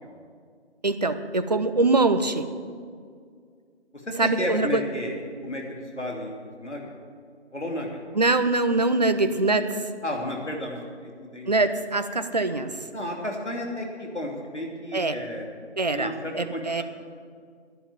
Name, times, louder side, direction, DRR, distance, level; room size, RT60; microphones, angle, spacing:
voice 1, 0.8-2.5 4.2-4.8 8.1-9.8 11.5-12.7 14.9-15.2 15.8-16.8, right 3 dB, 40° right, 10 dB, 0.7 m, -23 dB
voice 2, 4.2-5.1 5.4-5.6 5.9-6.8 7.5-8.2 10.0-11.5 12.9-15.5 15.9-16.8, left 1 dB, 85° left, 0 dB, 3.1 m, -32 dB
11.5 x 11.0 x 7.1 m, 2.1 s
figure-of-eight pair, 155°, 34 cm